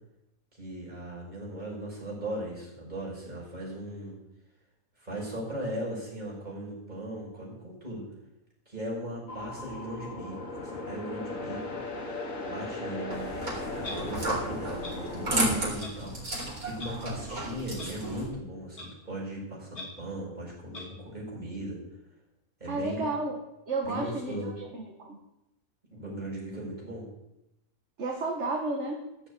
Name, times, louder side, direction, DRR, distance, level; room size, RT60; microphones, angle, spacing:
voice 1, 0.6-4.2 5.0-8.1 8.7-11.8 12.4-21.8 22.6-23.1 23.8-24.5 25.9-27.1, right 1 dB, 30° right, -4 dB, 6.3 m, -38 dB
sound 1, 9.3-15.7, left 2 dB, 60° left, 2.4 m, -37 dB
sound 2, 13.1-18.3, right 1 dB, 70° right, 4.4 m, -33 dB
Clock, 13.8-14.0 14.8-14.9 15.8-15.9 16.8-16.9 17.8-17.9 18.8-18.9 19.7-19.8 20.7-20.8, left 2 dB, 80° left, 3.5 m, -40 dB
voice 2, 22.7-23.4 23.7-25.2 28.0-29.1, right 2 dB, 50° right, 1 dB, 1.9 m, -32 dB
16.0 x 7.4 x 8.4 m, 0.90 s
omnidirectional pair, 1.6 m